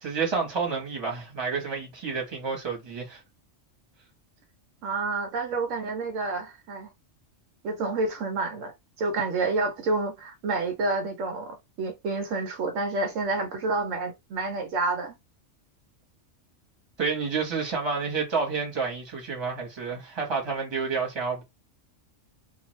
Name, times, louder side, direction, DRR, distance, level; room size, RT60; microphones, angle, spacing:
voice 1, 0.0-3.2 17.0-21.4, right 5 dB, 25° right, 1.0 m, -29 dB
voice 2, 4.8-6.9 7.6-8.7 9.0-15.1, right 3 dB, 80° right, 1.1 m, -29 dB
2.5 x 2.2 x 3.1 m
omnidirectional pair, 1.3 m